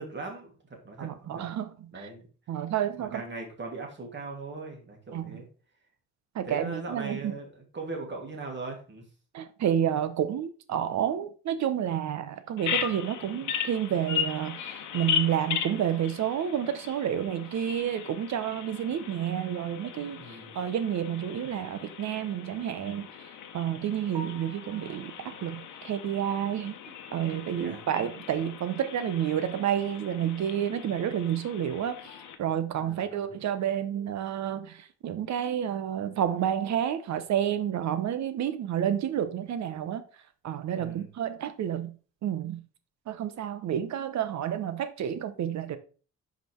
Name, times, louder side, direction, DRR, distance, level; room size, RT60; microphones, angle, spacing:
voice 1, 0.0-1.4 1.9-2.3 3.0-5.5 6.4-9.1 20.2-20.6 27.5-27.8 32.8-33.3 40.7-41.1, right 3 dB, 35° right, 2.5 m, -39 dB
voice 2, 1.0-1.7 2.0-2.1 2.5-3.2 5.1-5.4 6.3-7.3 9.3-23.1 23.5-26.8 27.1-40.0 40.4-41.9 42.2-42.6 43.1-45.8, right 9 dB, 65° right, 0.9 m, -30 dB
Bird vocalization bird call bird song, 12.6-32.4, left 9 dB, 80° left, 1.0 m, -37 dB
Piano, 24.1-28.1 28.5-28.6 29.1-29.2 29.5-29.6 32.7-32.8 41.3-41.5, right 1 dB, 85° right, 1.2 m, -51 dB
5.2 x 5.1 x 4.5 m
cardioid pair, 90°, 30 cm